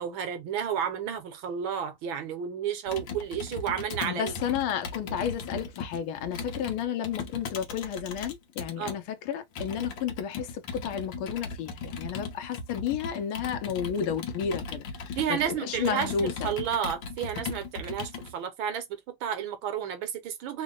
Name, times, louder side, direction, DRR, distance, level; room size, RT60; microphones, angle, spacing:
voice 1, 0.0-4.4 5.0-5.1 8.8-8.9 15.2-20.6, right 8 dB, 75° right, 1.4 m, -32 dB
Computer keyboard, 2.9-9.0 9.6-18.3, left 4 dB, 65° left, 1.5 m, -38 dB
voice 2, 4.0-16.5, left 8 dB, 85° left, 1.5 m, -32 dB
3.8 x 2.1 x 3.7 m
omnidirectional pair, 2.3 m